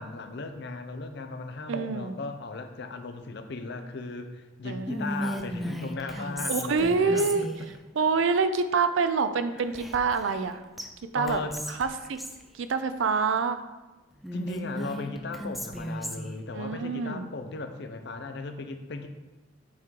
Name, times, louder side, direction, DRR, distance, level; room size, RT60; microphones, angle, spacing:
voice 1, 0.0-7.3 9.6-9.7 11.1-11.6 14.3-19.1, left 3 dB, 65° left, 7 dB, 0.6 m, -37 dB
voice 2, 1.7-2.2 4.6-5.0 6.5-7.5 8.0-10.6 11.1-11.4 11.7-12.2 12.6-13.6 16.5-17.3, right 4 dB, 80° right, 10 dB, 0.4 m, -26 dB
Whispering, 4.9-7.7 9.7-10.5 10.8-10.9 11.3-12.4 14.2-16.4, equal, ahead, 0.4 m, -35 dB
6.1 x 3.7 x 4.6 m, 1.1 s
head